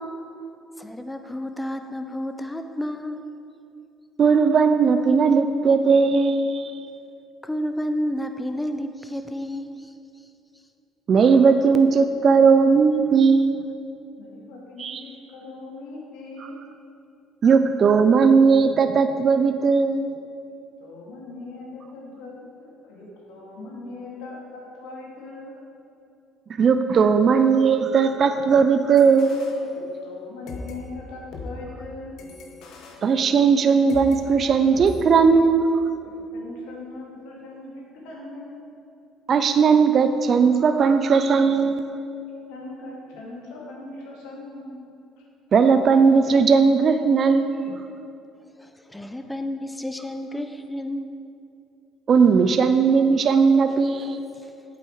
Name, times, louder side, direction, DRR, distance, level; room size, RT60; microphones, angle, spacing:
voice 1, 0.8-3.2 7.4-10.3 48.6-51.2 53.7-54.1 54.4-54.5, equal, 10° left, 7 dB, 0.7 m, -31 dB
voice 2, 4.2-6.7 11.1-13.6 14.8-15.0 17.4-20.1 26.6-29.3 33.0-35.7 39.3-41.8 45.5-47.8 52.1-54.2, right 5 dB, 50° right, 8 dB, 0.5 m, -18 dB
voice 3, 14.2-16.6 20.8-22.3 22.6-25.5 29.7-32.2 36.3-38.6 42.5-44.8 45.2-45.3, left 3 dB, 85° left, -3 dB, 2.2 m, -40 dB
sound 1, 29.0-30.2 30.5-34.2 34.8-35.0, left 2 dB, 70° left, 1.2 m, -40 dB
8.5 x 7.7 x 4.7 m, 2.6 s
supercardioid pair, 80°, 0 cm